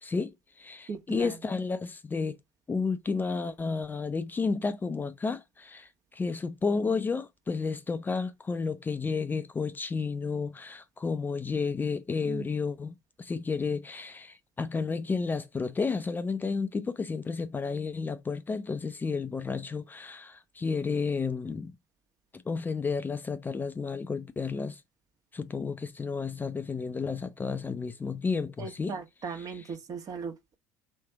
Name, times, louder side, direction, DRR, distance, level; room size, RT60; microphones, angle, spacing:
voice 1, 0.0-2.4 2.7-21.7 22.3-24.8 25.3-29.0 29.3-29.7, left 4 dB, 20° left, 0.6 m, -32 dB
voice 2, 0.9-1.3 12.2-12.4 28.6-30.6, right 5 dB, 45° right, 1.4 m, -38 dB
3.5 x 3.3 x 4.5 m
hypercardioid pair, 65°, 9 cm